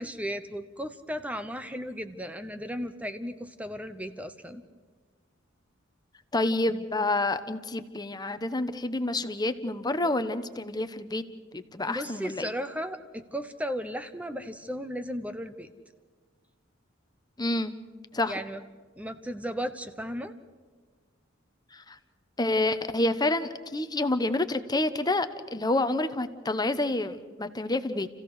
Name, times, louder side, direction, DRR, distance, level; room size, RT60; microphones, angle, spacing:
voice 1, 0.0-4.6 11.9-15.7 18.3-18.6 19.0-20.3, equal, 5° right, 10 dB, 0.9 m, -35 dB
voice 2, 6.3-11.2 11.5-12.5 17.4-17.8 18.1-18.4 21.7-22.0 22.4-28.1, left 2 dB, 20° left, 10 dB, 1.0 m, -28 dB
29.5 x 15.5 x 6.5 m, 1.4 s
head